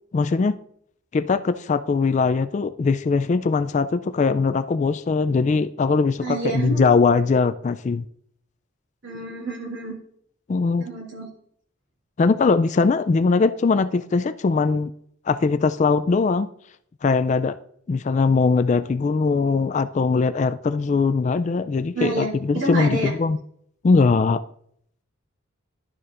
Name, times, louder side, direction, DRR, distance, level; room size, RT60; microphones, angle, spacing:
voice 1, 0.1-0.6 1.1-8.0 10.5-10.8 12.2-14.9 15.3-16.5 17.0-17.6 17.9-23.4 23.8-24.4, left 4 dB, 35° left, 0.3 m, -21 dB
voice 2, 6.2-6.9 9.0-10.0 10.8-11.3 21.9-23.1, right 2 dB, 60° right, 3.0 m, -28 dB
11.5 x 6.9 x 2.5 m
head